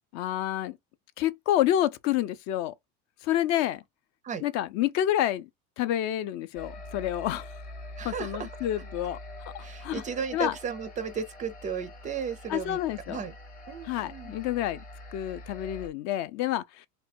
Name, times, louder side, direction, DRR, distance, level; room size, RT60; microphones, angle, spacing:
voice 1, 0.1-0.8 1.2-2.7 3.2-3.8 4.4-5.5 5.8-7.5 8.0-9.2 9.5-10.0 10.3-10.5 12.5-13.2 13.8-14.8 15.1-16.9, left 12 dB, 50° left, 0.5 m, -28 dB
sound 1, 6.6-15.9, left 1 dB, 25° left, 0.8 m, -44 dB
voice 2, 8.0-8.5 9.6-12.8 13.1-13.3 13.7-14.3, right 6 dB, 20° right, 0.4 m, -34 dB
3.4 x 2.2 x 4.2 m
cardioid pair, 155°, 35 cm